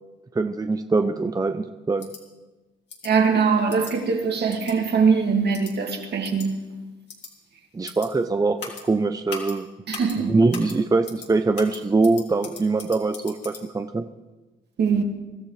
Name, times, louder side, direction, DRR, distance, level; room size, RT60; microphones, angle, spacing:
voice 1, 0.3-2.1 7.7-8.6 8.8-9.7 10.3-14.0, right 3 dB, 20° right, 0.6 m, -23 dB
sound 1, 2.0-2.2 2.9-3.1 3.7-3.9 4.5-4.7 5.5-5.7 6.2-6.5 7.1-7.3 7.8-8.1 8.6-8.8 9.3-9.5 9.9-10.2 10.5-10.8 11.0-11.3 11.5-13.6, left 5 dB, 60° left, 3.1 m, -38 dB
voice 2, 3.0-6.6 9.9-10.3 14.8-15.0, right 5 dB, 55° right, 2.3 m, -22 dB
23.0 x 13.5 x 3.3 m
cardioid pair, 90°, 20 cm